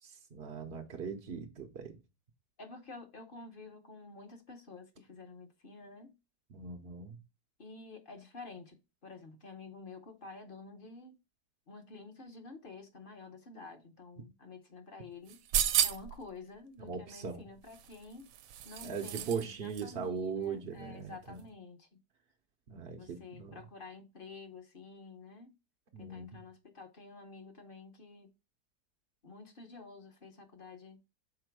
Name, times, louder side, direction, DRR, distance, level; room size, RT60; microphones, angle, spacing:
voice 1, 0.0-2.0 6.5-7.2 16.8-17.5 18.8-21.4 22.7-23.6 25.9-26.4, right 6 dB, 50° right, 0.7 m, -40 dB
voice 2, 2.6-6.2 7.6-11.1 11.7-15.4 15.8-18.3 18.6-22.0 22.8-25.6 26.0-28.3 29.2-31.0, left 3 dB, 40° left, 0.9 m, -50 dB
sound 1, 15.3-16.2 17.7-19.5 19.7-19.8, right 10 dB, 85° right, 1.2 m, -32 dB
5.9 x 4.3 x 4.6 m
omnidirectional pair, 1.8 m